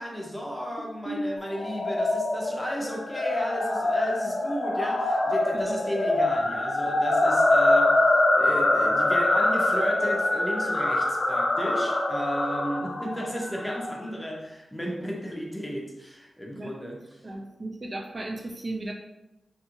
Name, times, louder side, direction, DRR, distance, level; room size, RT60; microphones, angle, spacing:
voice 1, 0.0-17.0, equal, 10° left, -1 dB, 0.7 m, -34 dB
sound 1, 1.5-13.9, left 2 dB, 50° left, 0.4 m, -24 dB
voice 2, 17.2-18.9, right 1 dB, 45° right, 1 dB, 0.4 m, -34 dB
2.6 x 2.5 x 2.7 m, 0.95 s
cardioid pair, 45°, 0 cm